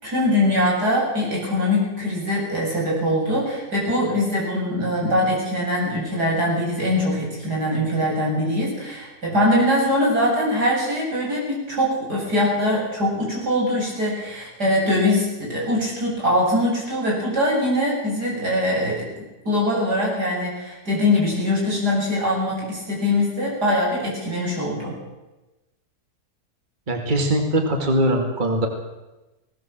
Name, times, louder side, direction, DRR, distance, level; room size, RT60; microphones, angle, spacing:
voice 1, 0.0-19.1 19.5-25.0, left 1 dB, 85° right, -4 dB, 8.5 m, -22 dB
voice 2, 26.9-28.7, right 1 dB, 30° right, 3 dB, 2.4 m, -21 dB
20.0 x 17.5 x 7.6 m, 1.1 s
omnidirectional pair, 1.7 m